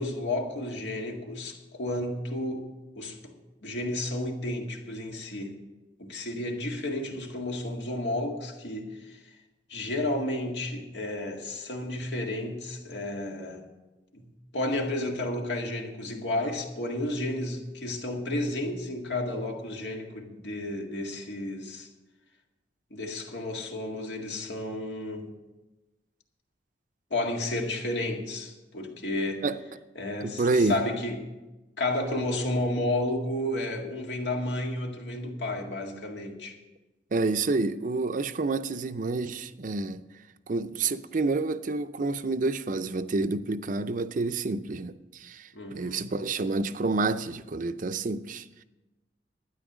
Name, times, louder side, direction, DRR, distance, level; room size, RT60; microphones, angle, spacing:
voice 1, 0.0-2.7 3.0-3.3 3.6-5.6 6.0-9.2 9.7-13.7 14.1-21.9 22.9-25.3 27.1-29.5 30.0-31.2 31.8-36.6 45.5-46.1, left 1 dB, 85° left, 1.9 m, -32 dB
voice 2, 30.2-30.8 37.1-40.0 40.5-48.6, right 3 dB, 50° right, 0.5 m, -29 dB
12.5 x 9.6 x 6.2 m
head